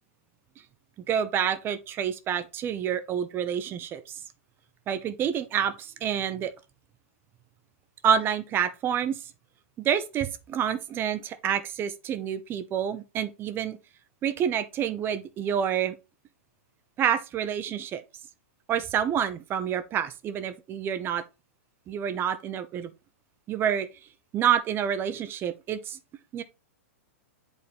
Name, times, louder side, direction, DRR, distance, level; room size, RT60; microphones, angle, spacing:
voice 1, 1.1-4.0 4.9-6.5 8.0-9.2 9.8-13.8 14.2-15.9 17.0-18.0 18.7-21.2 21.9-22.9 23.5-23.9 24.3-26.0 26.3-26.4, right 8 dB, 30° right, 0.8 m, -28 dB
8.1 x 4.0 x 3.4 m
hypercardioid pair, 115°, 8 cm